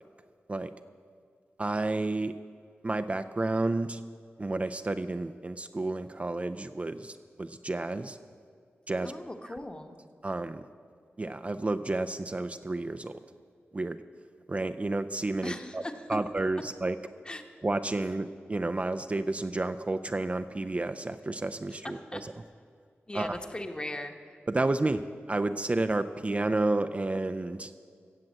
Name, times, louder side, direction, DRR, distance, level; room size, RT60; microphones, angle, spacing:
voice 1, 1.6-2.3 2.8-4.0 4.4-8.2 8.9-9.1 10.2-10.6 11.2-13.2 13.7-14.0 14.5-15.8 16.1-17.0 17.6-22.3 23.1-23.4 24.5-27.7, right 2 dB, 30° right, 9 dB, 0.4 m, -31 dB
voice 2, 9.0-9.9 15.4-16.0 17.2-17.4 21.7-22.2 23.1-24.4, left 1 dB, 20° left, 5 dB, 1.1 m, -39 dB
15.5 x 7.6 x 7.4 m, 2.2 s
wide cardioid pair, 70°, 4 cm